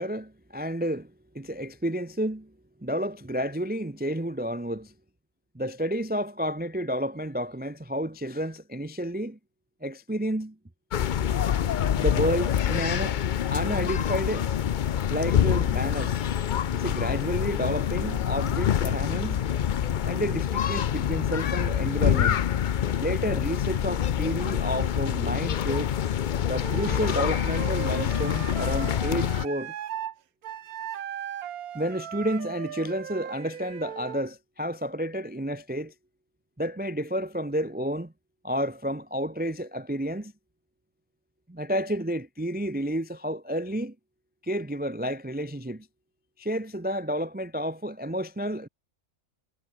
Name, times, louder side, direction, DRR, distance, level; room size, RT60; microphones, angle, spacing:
voice 1, 0.0-2.5 2.8-4.9 5.5-9.4 9.8-10.5 11.9-13.2 13.5-14.5 15.1-16.2 16.7-19.4 20.0-22.4 23.0-25.9 26.5-29.7 31.7-35.9 36.6-38.1 38.4-40.3 41.5-43.9 44.4-45.9 46.4-48.7, equal, 10° right, 0.6 m, -30 dB
sound 1, 10.9-29.4, left 9 dB, 85° left, 0.4 m, -26 dB
Wind instrument woodwind instrument, 26.6-30.1 30.4-34.2, right 10 dB, 75° right, 1.3 m, -37 dB
omnidirectional pair, 1.6 m